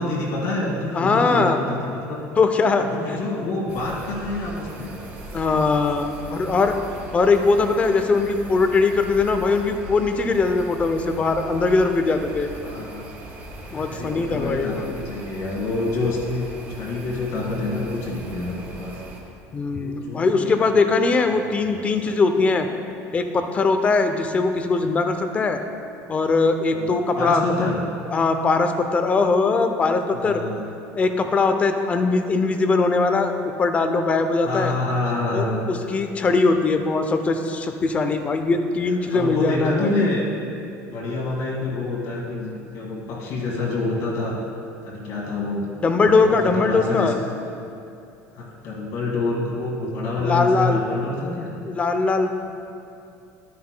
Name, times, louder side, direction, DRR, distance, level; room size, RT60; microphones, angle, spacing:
voice 1, 0.0-2.2 2.8-5.6 12.6-13.1 13.7-18.9 19.8-22.1 26.7-27.8 30.1-30.6 34.4-35.6 38.8-40.2 40.9-44.4 44.8-45.6 46.0-47.1 48.3-51.5, left 2 dB, 70° left, -4 dB, 1.9 m, -27 dB
voice 2, 0.9-1.6 2.4-3.2 5.3-6.8 7.1-12.5 13.7-14.9 19.5-22.7 23.1-25.6 26.1-27.7 28.1-30.4 30.9-34.7 35.3-40.1 45.8-47.2 50.2-50.8 51.7-52.5, left 3 dB, 20° left, 7 dB, 0.5 m, -21 dB
sound 1, 3.7-19.2, right 1 dB, 30° right, 2.2 m, -39 dB
12.0 x 9.4 x 2.2 m, 2.6 s
cardioid pair, 155°, 6 cm